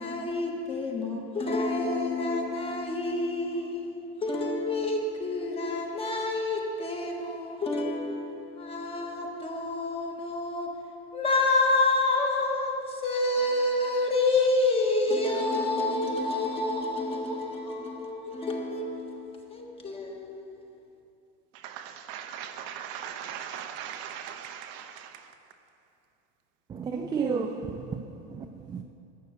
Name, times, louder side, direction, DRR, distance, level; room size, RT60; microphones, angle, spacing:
voice 1, 0.0-20.5, left 2 dB, 20° left, 1.5 m, -28 dB
voice 2, 21.5-25.3, right 9 dB, 55° right, 0.9 m, -39 dB
voice 3, 26.7-28.8, right 5 dB, 15° right, 0.3 m, -32 dB
12.5 x 6.5 x 8.1 m
supercardioid pair, 140°, 30 cm